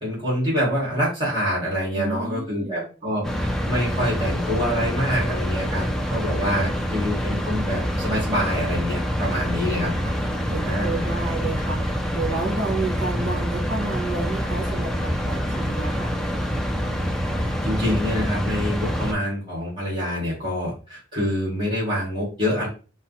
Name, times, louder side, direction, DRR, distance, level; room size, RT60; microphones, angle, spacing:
voice 1, 0.0-9.9 10.6-11.0 17.6-22.7, equal, 25° right, -6 dB, 2.0 m, -26 dB
voice 2, 2.0-2.9 9.0-16.1, right 3 dB, 40° right, 0 dB, 1.9 m, -32 dB
sound 1, 3.2-19.1, equal, ahead, 0.4 m, -26 dB
5.1 x 2.1 x 4.1 m, 0.35 s
head